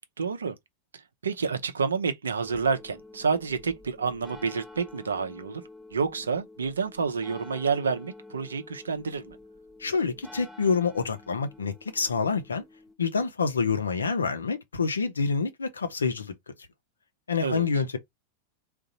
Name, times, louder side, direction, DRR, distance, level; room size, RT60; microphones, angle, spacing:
voice 1, 0.2-0.6 0.9-5.6 5.9-9.4 17.4-17.7, right 5 dB, 70° right, 0.7 m, -29 dB
sound 1, 2.4-13.0, left 2 dB, ahead, 0.6 m, -49 dB
voice 2, 9.8-12.6 13.0-16.3 17.3-18.0, left 5 dB, 75° left, 0.8 m, -27 dB
3.7 x 2.6 x 4.1 m
figure-of-eight pair, 90°, 0 cm